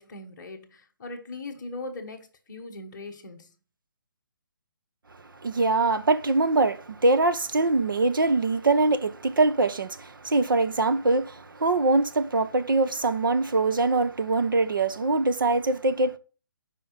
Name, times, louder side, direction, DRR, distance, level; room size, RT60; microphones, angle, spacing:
voice 1, 0.0-3.5, left 2 dB, 10° left, 1.2 m, -40 dB
voice 2, 5.4-16.2, right 3 dB, 75° right, 1.1 m, -23 dB
8.9 x 5.0 x 5.7 m
hypercardioid pair, 180°, 11 cm